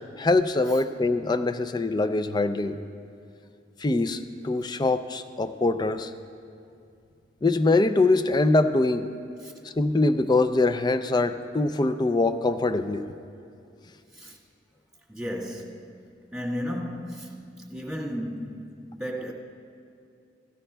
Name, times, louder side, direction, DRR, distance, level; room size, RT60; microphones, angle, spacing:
voice 1, 0.2-2.8 3.8-6.1 7.4-9.1 9.8-13.0, left 2 dB, 25° left, 0.4 m, -23 dB
voice 2, 15.1-15.9 16.3-19.3, equal, 5° right, 1.6 m, -34 dB
17.0 x 16.5 x 2.3 m
head